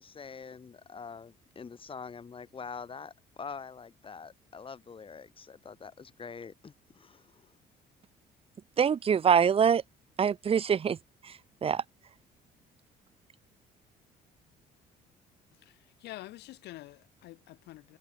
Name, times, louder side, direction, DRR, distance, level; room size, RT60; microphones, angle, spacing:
voice 1, 0.0-7.5, left 5 dB, 30° left, 7.2 m, -45 dB
voice 2, 8.8-9.8 10.2-11.0 11.6-11.8, right 7 dB, 35° right, 0.9 m, -24 dB
voice 3, 15.6-18.0, left 17 dB, 80° left, 5.8 m, -47 dB
cardioid pair, 110°, 17 cm